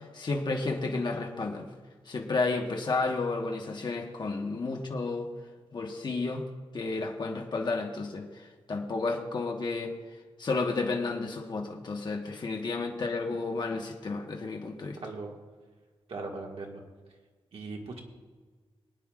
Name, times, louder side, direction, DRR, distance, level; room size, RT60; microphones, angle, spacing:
voice 1, 0.0-1.7 2.1-5.3 5.7-6.5 6.7-9.9 10.4-15.0, left 3 dB, 45° left, 1 dB, 1.3 m, -32 dB
voice 2, 15.0-15.3 16.1-16.8 17.5-18.0, right 3 dB, 75° right, -1 dB, 1.9 m, -39 dB
23.5 x 9.3 x 2.5 m, 1.4 s
wide cardioid pair, 140°, 10 cm